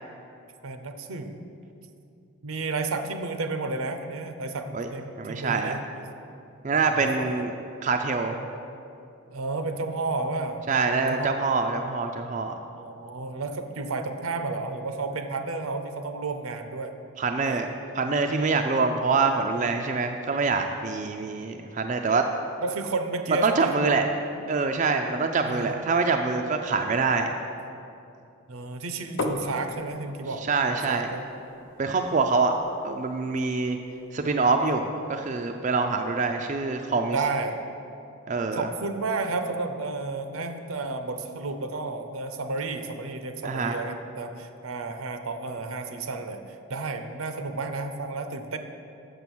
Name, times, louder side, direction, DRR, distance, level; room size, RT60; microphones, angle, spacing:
voice 1, 0.6-1.4 2.4-6.1 6.7-7.5 8.3-8.5 9.3-11.3 12.8-16.9 17.5-17.6 22.6-24.1 25.4-25.8 28.5-30.4 30.7-31.3 37.1-37.6 38.5-48.6, right 3 dB, 80° right, 8 dB, 0.6 m, -32 dB
voice 2, 5.2-5.8 6.6-7.5 7.8-8.3 10.7-12.5 17.2-17.7 18.0-22.2 23.4-24.0 24.5-27.3 30.5-31.1 31.8-32.5 32.8-33.8 34.1-37.2 38.3-38.7 43.4-43.8, right 4 dB, 35° right, 4 dB, 0.3 m, -25 dB
sound 1, 29.2-34.8, left 2 dB, 60° left, 0.6 m, -39 dB
7.0 x 6.7 x 6.0 m, 2.6 s
head